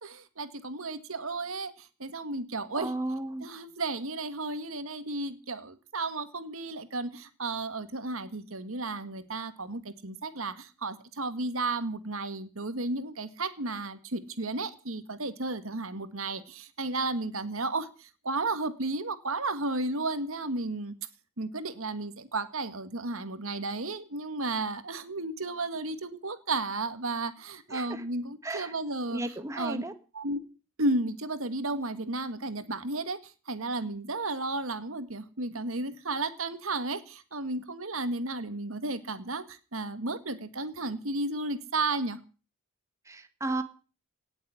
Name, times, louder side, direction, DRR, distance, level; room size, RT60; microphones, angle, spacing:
voice 1, 0.0-1.7 2.0-2.9 3.4-20.9 21.4-29.2 29.6-29.8 30.2-30.4 30.8-33.2 33.5-42.2, right 2 dB, 70° right, 11 dB, 1.9 m, -33 dB
voice 2, 2.7-3.5 27.7-28.0 28.4-28.7 29.1-29.9 43.0-43.6, right 2 dB, 15° right, 8 dB, 1.5 m, -34 dB
18.5 x 7.3 x 9.9 m, 0.37 s
head